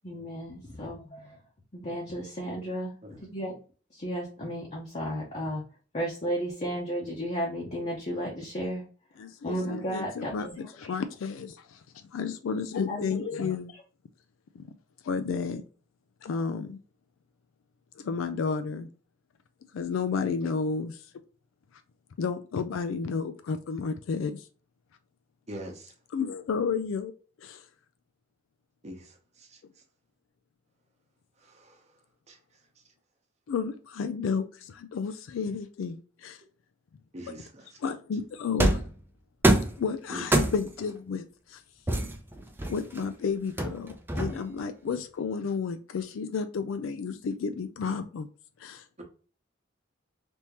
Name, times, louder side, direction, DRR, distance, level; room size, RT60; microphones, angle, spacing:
voice 1, 0.0-1.4 1.7-3.6 3.9-5.6 5.9-8.8 9.4-10.5 10.8-10.9 12.9-13.5, equal, 35° left, 0.8 m, -34 dB
voice 2, 9.2-11.8 12.1-13.7 14.5-14.6 15.0-15.6 16.2-16.8 18.0-18.9 19.7-21.0 22.2-24.5 26.1-27.1 27.4-27.6 33.5-36.4 37.8-38.8 39.8-41.6 42.7-48.3 48.6-48.8, left 5 dB, 85° left, 0.4 m, -32 dB
voice 3, 25.5-25.9 28.8-29.1 29.4-29.5 31.5-31.8 32.3-32.4 37.1-37.7 40.1-40.2 49.0-49.1, right 1 dB, 35° right, 0.9 m, -41 dB
sound 1, 38.6-38.9 39.4-39.8 40.3-40.8 41.9-43.0 43.6-44.6, right 1 dB, 10° right, 0.5 m, -25 dB
3.5 x 2.8 x 2.9 m
head